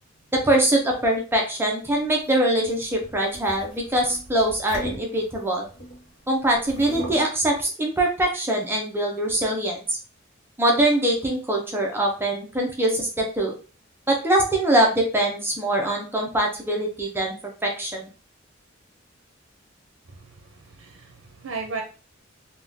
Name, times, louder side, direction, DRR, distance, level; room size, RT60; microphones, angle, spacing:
voice 1, 0.3-5.7 6.3-10.0 10.6-13.5 14.2-17.3 17.6-18.0, right 1 dB, 10° right, 0 dB, 0.5 m, -23 dB
sound 1, 1.9-6.1 6.4-7.3, right 1 dB, 70° left, 0.9 m, -38 dB
voice 2, 20.1-21.8, right 4 dB, 75° right, 3 dB, 0.6 m, -36 dB
3.5 x 2.3 x 2.6 m, 0.36 s
head